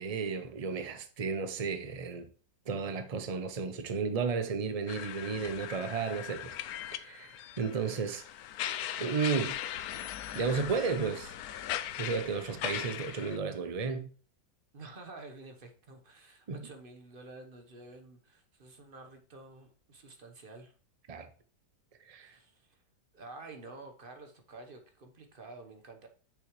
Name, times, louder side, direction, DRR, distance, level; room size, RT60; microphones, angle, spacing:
voice 1, 0.0-2.3 2.7-6.5 6.9-8.2 9.0-9.6 10.3-11.3 12.0-14.1 16.5-16.7 21.1-21.3 22.1-22.3, right 5 dB, 65° right, 0.3 m, -33 dB
sound 1, 4.9-13.4, left 11 dB, 70° left, 1.0 m, -39 dB
voice 2, 14.7-20.7 22.2-22.8 23.1-26.1, right 3 dB, 35° right, 1.2 m, -50 dB
8.6 x 6.6 x 3.1 m
omnidirectional pair, 1.7 m